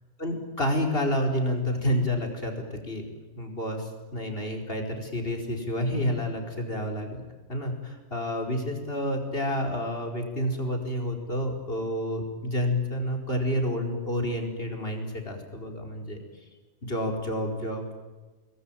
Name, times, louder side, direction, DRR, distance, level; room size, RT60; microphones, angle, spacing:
voice 1, 0.2-3.0 3.4-7.2 7.5-16.2 16.8-17.9, equal, 40° left, 2 dB, 5.1 m, -29 dB
28.0 x 21.0 x 9.1 m, 1.3 s
omnidirectional pair, 1.5 m